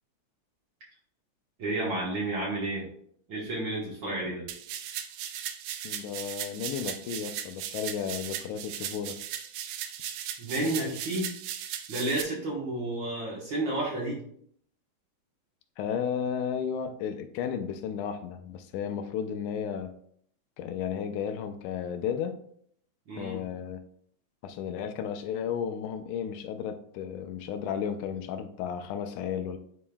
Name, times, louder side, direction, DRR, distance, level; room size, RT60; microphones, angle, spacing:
voice 1, 1.6-2.9 3.3-4.5 10.4-11.3 11.9-14.2 23.1-23.4, right 1 dB, 50° right, -5 dB, 1.6 m, -31 dB
sound 1, 4.5-12.2, right 10 dB, 90° right, 2.1 m, -37 dB
voice 2, 5.8-9.2 15.8-20.0 20.6-22.4 23.2-23.8 24.4-29.6, left 8 dB, 85° left, 7 dB, 2.1 m, -33 dB
10.0 x 4.3 x 2.3 m, 0.66 s
omnidirectional pair, 3.5 m